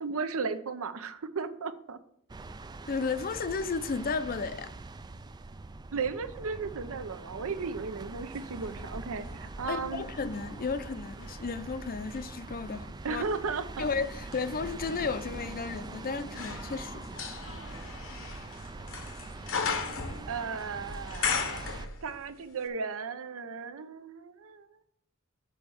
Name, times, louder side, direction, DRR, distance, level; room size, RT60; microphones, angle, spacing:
voice 1, 0.0-2.0 5.9-10.1 13.0-13.9 20.3-24.8, right 5 dB, 65° right, 0.7 m, -35 dB
sound 1, 2.3-21.9, right 3 dB, 20° right, 0.3 m, -43 dB
voice 2, 2.9-4.7 9.7-13.2 13.8-17.0, left 4 dB, 40° left, 0.6 m, -33 dB
sound 2, 8.3-10.5 11.0-22.4 22.6-22.7, left 5 dB, 65° left, 1.0 m, -38 dB
7.0 x 4.6 x 6.9 m
head